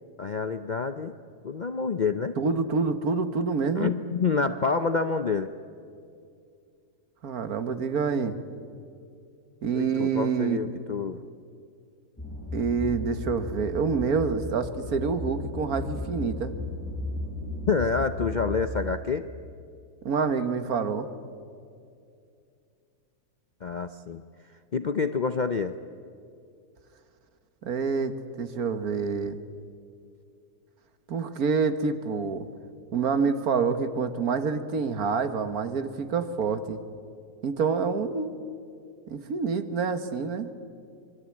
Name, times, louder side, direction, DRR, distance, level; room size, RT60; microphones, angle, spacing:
voice 1, 0.2-1.1 1.4-2.4 3.8-5.5 9.7-11.2 17.7-19.3 23.6-24.2 24.7-25.7, left 5 dB, 55° left, 9 dB, 0.5 m, -27 dB
voice 2, 2.4-3.9 7.2-8.4 9.6-10.6 12.5-16.5 20.1-21.1 27.6-29.4 31.1-32.5 32.9-36.8 37.4-38.3 39.1-40.5, right 5 dB, 65° right, 10 dB, 1.8 m, -27 dB
sound 1, 12.2-18.6, left 2 dB, 10° left, 7.9 m, -35 dB
26.0 x 22.0 x 8.5 m, 2.4 s
omnidirectional pair, 1.7 m